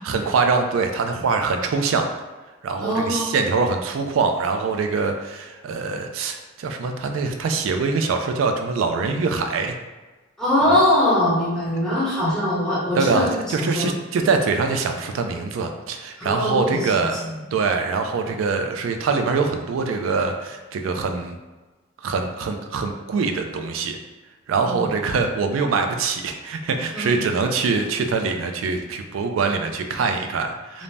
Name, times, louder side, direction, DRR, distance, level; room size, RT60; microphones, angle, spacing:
voice 1, 0.0-2.1 2.6-9.7 10.7-10.8 13.0-17.2 17.5-21.4 22.0-24.0 24.5-30.8, right 4 dB, 90° right, 5 dB, 0.3 m, -23 dB
voice 2, 2.8-3.3 10.4-13.9 16.2-17.1 24.6-24.8 26.9-27.2 30.7-30.8, left 1 dB, 5° left, -10 dB, 0.9 m, -22 dB
2.5 x 2.0 x 3.2 m, 1.2 s
head